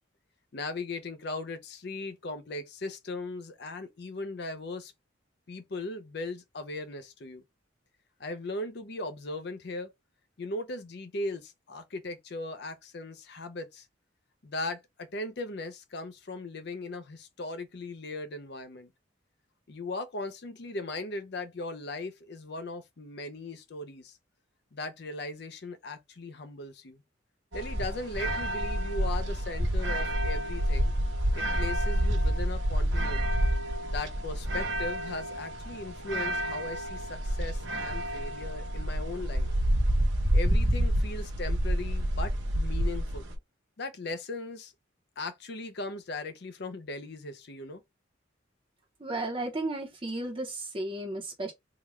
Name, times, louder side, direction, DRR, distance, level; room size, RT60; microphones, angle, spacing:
voice 1, 0.5-4.9 5.5-7.4 8.2-9.9 10.4-13.9 14.4-18.9 19.7-24.2 24.7-27.0 27.5-30.9 31.3-33.3 33.9-39.5 40.3-43.3 43.8-44.7 45.2-47.8, left 2 dB, 55° left, 0.6 m, -38 dB
sound 1, 27.5-43.4, equal, 75° right, 1.0 m, -28 dB
voice 2, 49.0-51.5, right 2 dB, 30° right, 0.8 m, -34 dB
3.7 x 2.3 x 3.1 m
head